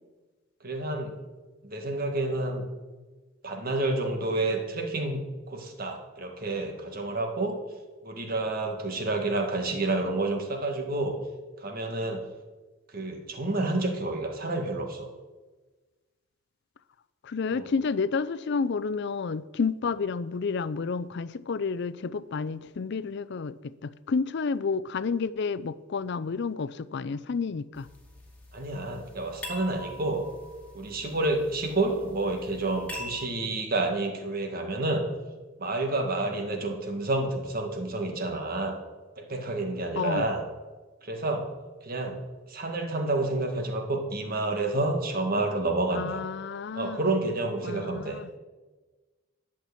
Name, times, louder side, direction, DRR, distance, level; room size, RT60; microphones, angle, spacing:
voice 1, 0.6-1.2 1.6-2.6 3.4-7.6 8.0-11.2 11.6-12.2 12.9-15.1 17.5-17.7 28.5-30.3 30.7-35.0 35.6-38.7 39.2-40.4 41.0-41.5 41.8-42.2 42.5-46.2 46.7-48.2, right 2 dB, 45° right, 4 dB, 1.7 m, -29 dB
voice 2, 17.2-27.9 40.0-40.3 45.9-47.0 47.6-48.3, left 5 dB, 60° left, 16 dB, 0.4 m, -30 dB
sound 1, 27.7-33.3, left 1 dB, 5° left, 2.3 m, -44 dB
11.0 x 5.9 x 8.4 m, 1.3 s
head